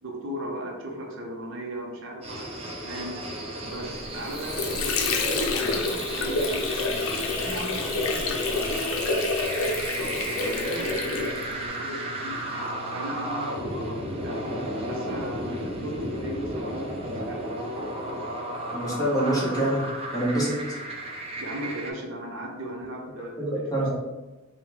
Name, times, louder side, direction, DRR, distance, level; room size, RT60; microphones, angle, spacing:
voice 1, 0.0-3.2 3.7-7.1 7.4-9.0 9.9-14.4 14.9-17.5 21.4-23.9, right 1 dB, 65° right, 0 dB, 0.7 m, -38 dB
sound 1, 2.2-21.9, right 1 dB, 30° right, 0.6 m, -34 dB
Water / Sink (filling or washing), 4.0-11.7, left 3 dB, 85° left, 0.6 m, -28 dB
voice 2, 18.7-19.9 20.1-20.6 23.4-23.9, right 1 dB, 20° left, -5 dB, 1.1 m, -25 dB
3.7 x 2.3 x 4.2 m, 1.1 s
head